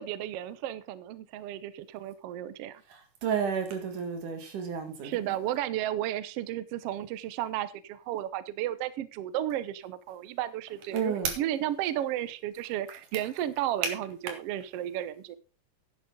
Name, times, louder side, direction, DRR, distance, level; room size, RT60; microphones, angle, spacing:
voice 1, 0.0-2.8 5.0-15.4, right 12 dB, 90° right, 1.3 m, -33 dB
voice 2, 3.2-5.4 10.9-11.4 13.8-13.9, right 6 dB, 75° right, 3.4 m, -31 dB
11.0 x 10.5 x 3.7 m
omnidirectional pair, 3.7 m